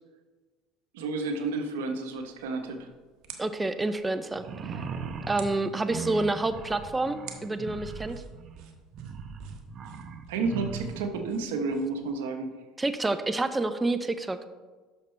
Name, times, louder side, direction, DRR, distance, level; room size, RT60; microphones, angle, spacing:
voice 1, 0.9-2.9 10.3-12.5, right 3 dB, 85° right, 6 dB, 1.0 m, -31 dB
sound 1, 2.1-12.1, right 8 dB, 65° right, 1.2 m, -52 dB
voice 2, 3.4-4.5 5.3-8.2 12.8-14.4, right 2 dB, 15° right, 10 dB, 0.5 m, -28 dB
sound 2, 4.3-11.2, right 5 dB, 45° right, 0.8 m, -39 dB
10.0 x 6.6 x 3.3 m, 1.3 s
supercardioid pair, 90°, 0 cm